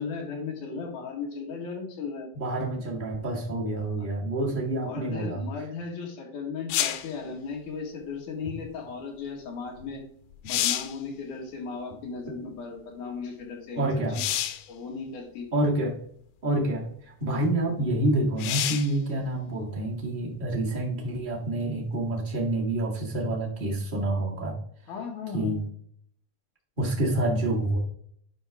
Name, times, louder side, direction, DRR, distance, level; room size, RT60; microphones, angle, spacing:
voice 1, 0.0-2.3 4.8-10.0 10.4-13.9 14.1-14.3 14.7-15.5 24.9-25.6, left 5 dB, 60° left, 0 dB, 2.7 m, -36 dB
voice 2, 2.3-5.4 13.8-14.2 15.5-16.0 16.4-24.6 25.3-25.6 26.8-27.8, right 1 dB, 45° right, -3 dB, 0.6 m, -28 dB
sound 1, 6.7-7.1 9.8-9.9 10.3-11.0 14.1-14.7 15.7-15.8 18.4-19.0 22.6-22.7, left 13 dB, 85° left, 2.8 m, -28 dB
11.5 x 4.9 x 3.5 m, 0.63 s
omnidirectional pair, 4.6 m